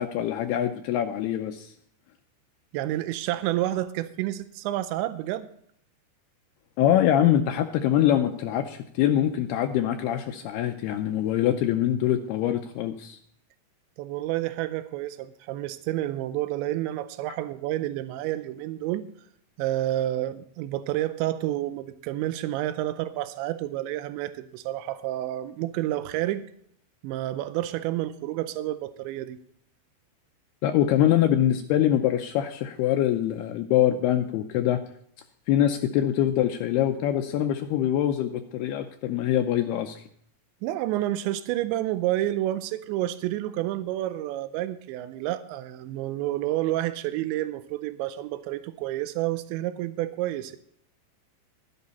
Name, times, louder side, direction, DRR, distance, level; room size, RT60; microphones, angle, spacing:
voice 1, 0.0-1.7 6.8-13.2 30.6-34.8 35.5-40.0, left 11 dB, 80° left, 7 dB, 2.4 m, -24 dB
voice 2, 2.7-5.5 14.0-19.0 19.6-26.5 27.0-29.4 40.6-50.6, right 14 dB, 90° right, 12 dB, 3.0 m, -29 dB
13.0 x 11.0 x 4.2 m, 0.66 s
omnidirectional pair, 5.1 m